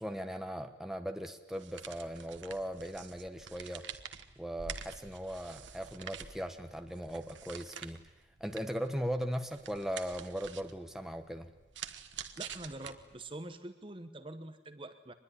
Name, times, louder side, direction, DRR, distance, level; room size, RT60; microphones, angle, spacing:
voice 1, 0.0-3.8 4.4-8.0 8.4-11.5, equal, ahead, 5 dB, 1.2 m, -38 dB
sound 1, 1.5-13.4, right 7 dB, 75° right, 1.4 m, -48 dB
voice 2, 12.4-15.1, right 1 dB, 25° right, 9 dB, 1.1 m, -45 dB
24.0 x 21.0 x 9.9 m, 1.0 s
head